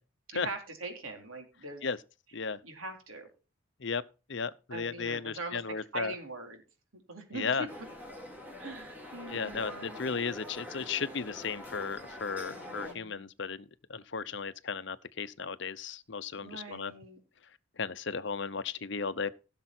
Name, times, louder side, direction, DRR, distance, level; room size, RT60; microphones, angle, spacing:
voice 1, 0.3-1.8 2.6-3.3 4.7-6.6 6.9-7.7 8.6-10.0 12.5-13.3 16.4-17.2, right 2 dB, 80° right, 4.0 m, -42 dB
voice 2, 4.3-6.1 7.3-7.6 9.3-13.6 13.9-16.9 17.8-19.3, left 5 dB, 55° left, 0.7 m, -35 dB
sound 1, 7.7-12.9, left 1 dB, 10° right, 3.0 m, -45 dB
16.5 x 6.8 x 4.4 m
head